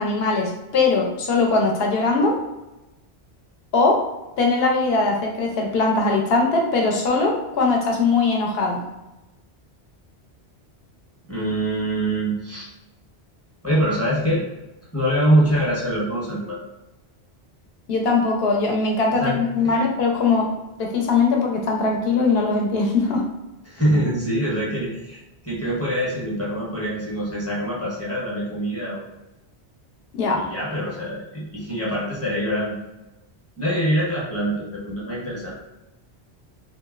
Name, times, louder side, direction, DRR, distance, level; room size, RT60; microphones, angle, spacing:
voice 1, 0.0-2.3 3.7-4.0 4.4-8.8 17.9-20.5 20.8-23.2 30.1-30.4, left 3 dB, 70° left, 0 dB, 0.9 m, -20 dB
voice 2, 11.3-12.7 13.6-14.4 14.9-16.6 19.2-19.4 19.6-19.8 23.6-25.2 25.4-29.0 30.3-32.8 33.6-35.6, right 1 dB, 15° left, -7 dB, 0.7 m, -24 dB
3.0 x 2.7 x 2.3 m, 0.99 s
omnidirectional pair, 1.1 m